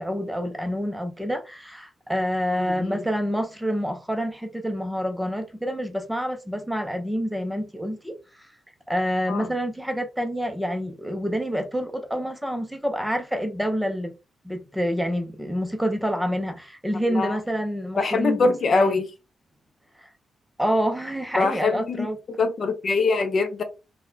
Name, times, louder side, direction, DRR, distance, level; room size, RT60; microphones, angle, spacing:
voice 1, 0.0-8.5 8.9-14.1 14.4-19.0 20.0-20.1 20.6-22.2, equal, 5° right, 0.6 m, -27 dB
voice 2, 2.5-3.0 9.3-9.5 17.1-17.4 18.0-19.1 21.4-22.1 22.4-23.6, left 3 dB, 40° left, 0.6 m, -23 dB
3.9 x 2.2 x 2.7 m
wide cardioid pair, 145°, 0 cm